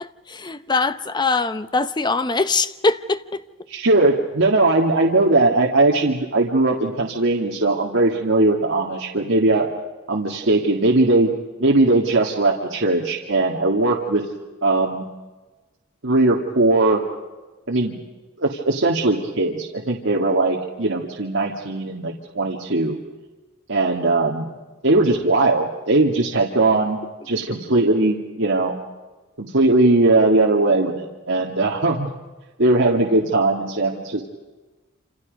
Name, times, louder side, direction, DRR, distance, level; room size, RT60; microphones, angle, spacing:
voice 1, 0.0-3.4, left 3 dB, 20° left, 0.8 m, -22 dB
voice 2, 3.7-9.7 10.1-11.3 11.6-14.2 14.6-15.1 16.0-17.0 17.7-18.0 18.4-23.0 23.7-24.5 24.8-27.0 27.3-28.7 29.4-32.1 32.6-34.2, right 2 dB, 65° right, 2.1 m, -19 dB
27.5 x 27.5 x 5.3 m
head